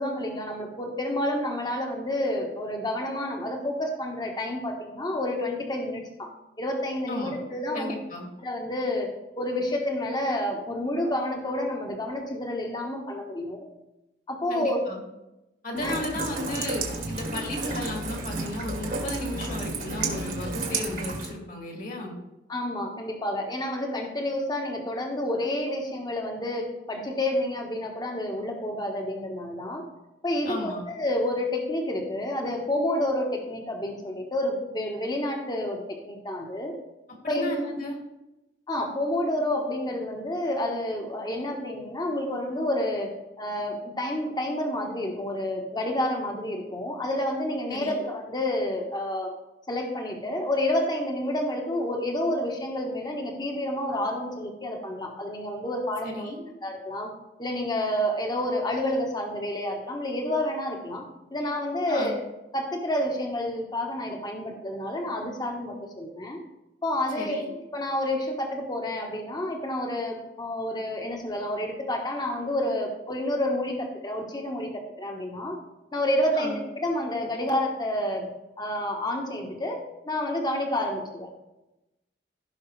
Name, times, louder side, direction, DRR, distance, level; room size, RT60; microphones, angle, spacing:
voice 1, 0.0-6.3 6.6-7.9 8.4-9.1 9.4-13.6 14.3-14.8 15.7-16.0 22.5-29.9 30.2-36.7 37.3-37.5 38.7-43.1 43.4-49.3 49.7-56.3 56.6-57.1 57.4-61.0 61.3-62.2 62.5-66.4 66.8-67.4 67.7-75.6 75.9-78.3 78.6-81.5, left 1 dB, 25° left, 1 dB, 1.3 m, -29 dB
voice 2, 7.7-8.3 14.5-15.0 15.6-22.1 30.5-30.8 37.2-38.0 47.7-48.1 56.0-56.4 61.9-62.1 67.1-67.5 76.3-76.6, left 1 dB, 50° left, 0 dB, 2.3 m, -34 dB
Rain, 15.8-21.3, right 3 dB, 50° right, 1.7 m, -32 dB
16.0 x 5.8 x 3.3 m, 0.97 s
head